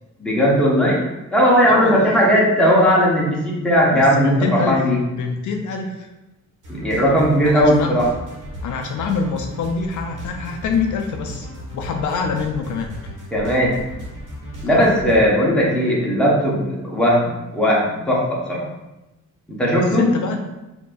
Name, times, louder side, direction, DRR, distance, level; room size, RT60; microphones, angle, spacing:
voice 1, 0.2-1.0 1.3-4.4 4.7-5.0 6.7-8.1 13.3-13.8 14.6-18.6 19.6-20.1, equal, 5° left, -6 dB, 1.1 m, -17 dB
voice 2, 1.6-2.2 3.9-4.8 5.1-6.1 7.5-8.0 8.6-11.5 11.7-13.1 14.6-15.0 19.7-20.4, left 5 dB, 65° left, 3 dB, 0.5 m, -25 dB
sound 1, 6.6-15.3, equal, 70° right, 1.4 m, -35 dB
4.4 x 2.8 x 2.5 m, 1.0 s
cardioid pair, 110°, 32 cm